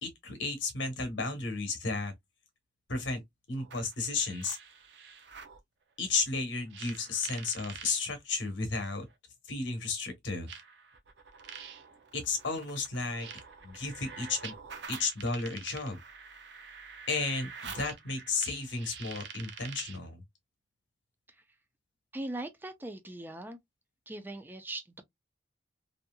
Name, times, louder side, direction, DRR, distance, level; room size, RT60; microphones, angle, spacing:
voice 1, 0.0-2.1 2.9-3.2 3.5-4.6 6.0-9.0 9.5-10.5 12.1-13.3 13.6-14.5 14.9-16.0 17.1-20.2, left 3 dB, 75° left, 1.2 m, -33 dB
sound 1, 3.6-5.6 6.7-8.0 9.1-9.2 10.5-20.1, right 6 dB, 65° right, 0.6 m, -47 dB
voice 2, 22.1-23.6 24.1-25.0, right 1 dB, 10° right, 0.5 m, -40 dB
2.8 x 2.7 x 2.2 m
head